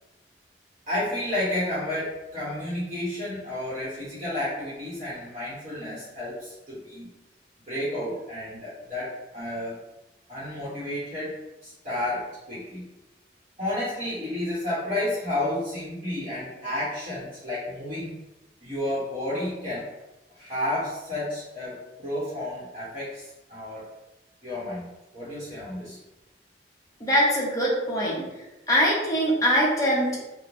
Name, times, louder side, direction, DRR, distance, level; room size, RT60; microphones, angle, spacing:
voice 1, 0.9-7.1 7.7-9.8 10.3-12.8 13.6-18.2 18.6-19.9 20.3-23.2 23.5-23.9 24.4-24.9 25.1-26.0, left 1 dB, 40° right, -11 dB, 0.9 m, -31 dB
voice 2, 27.0-28.2 28.7-30.2, equal, 20° left, -5 dB, 0.6 m, -22 dB
3.1 x 2.0 x 2.5 m, 0.98 s
head